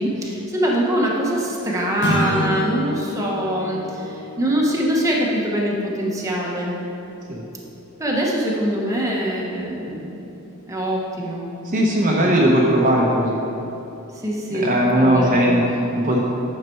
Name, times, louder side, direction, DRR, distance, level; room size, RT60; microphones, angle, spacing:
voice 1, 0.0-6.8 8.0-10.1 10.7-11.5 14.2-15.5, equal, 15° right, -3 dB, 1.1 m, -23 dB
sound 1, 2.0-6.5, equal, 50° left, 1.6 m, -29 dB
voice 2, 11.7-13.4 14.5-16.2, equal, 35° right, -3 dB, 0.9 m, -18 dB
9.3 x 6.7 x 4.5 m, 3.0 s
head